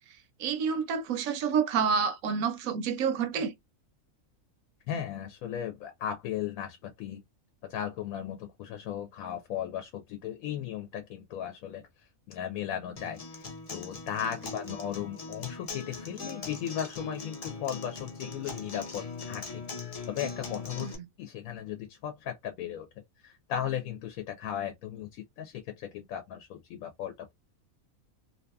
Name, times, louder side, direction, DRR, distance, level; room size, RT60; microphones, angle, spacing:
voice 1, 0.4-3.5 20.8-21.1, right 6 dB, 75° right, 1.0 m, -28 dB
voice 2, 4.9-7.2 7.6-11.8 12.3-20.9 21.2-22.9 23.2-27.3, left 10 dB, 80° left, 1.0 m, -36 dB
Acoustic guitar, 13.0-20.9, left 4 dB, 50° left, 0.4 m, -40 dB
2.7 x 2.6 x 2.2 m
omnidirectional pair, 1.5 m